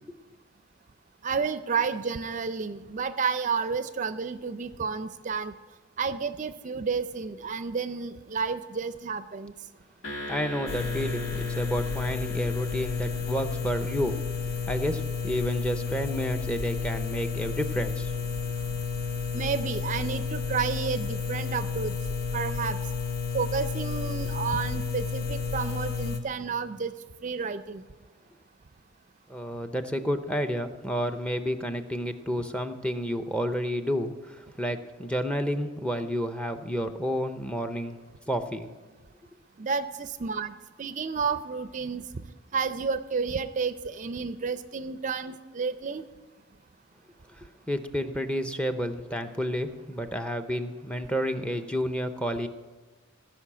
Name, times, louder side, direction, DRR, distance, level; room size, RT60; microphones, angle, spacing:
voice 1, 1.2-5.5 6.0-9.5 19.3-22.0 22.3-22.8 23.3-26.9 27.2-27.8 39.6-42.0 42.5-46.0, right 5 dB, 40° right, 12 dB, 0.5 m, -31 dB
sound 1, 10.0-14.5, left 1 dB, 85° left, 2.7 m, -41 dB
voice 2, 10.3-14.2 14.7-18.1 29.3-38.0 38.3-38.7 47.4-52.5, equal, 5° left, 8 dB, 0.7 m, -30 dB
sound 2, 10.7-26.2, left 5 dB, 50° left, 1.2 m, -31 dB
16.0 x 6.2 x 8.7 m, 1.3 s
head